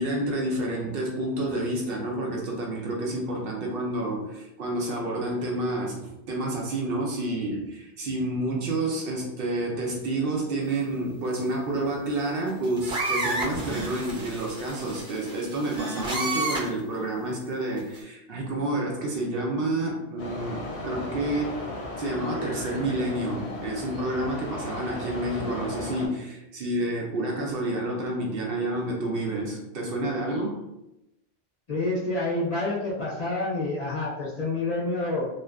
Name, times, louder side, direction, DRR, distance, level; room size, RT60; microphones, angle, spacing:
voice 1, 0.0-21.6 22.0-30.6, right 1 dB, 65° right, -1 dB, 0.7 m, -29 dB
sound 1, 12.5-16.8 17.8-18.0, right 2 dB, 5° right, 0.6 m, -31 dB
sound 2, 20.2-26.1, left 2 dB, 90° left, 0.9 m, -36 dB
voice 2, 31.7-35.3, left 2 dB, 45° left, -7 dB, 0.6 m, -28 dB
2.5 x 2.3 x 2.2 m, 0.90 s
omnidirectional pair, 1.1 m